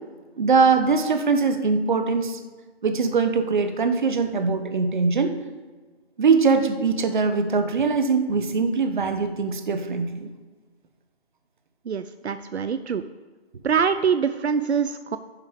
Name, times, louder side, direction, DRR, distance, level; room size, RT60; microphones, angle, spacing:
voice 1, 0.4-2.4 2.8-5.3 6.2-10.3, right 4 dB, 50° right, 7 dB, 1.1 m, -22 dB
voice 2, 11.8-13.0 13.6-15.2, right 6 dB, 85° right, 11 dB, 0.6 m, -24 dB
10.0 x 7.3 x 5.1 m, 1.3 s
figure-of-eight pair, 155°, 32 cm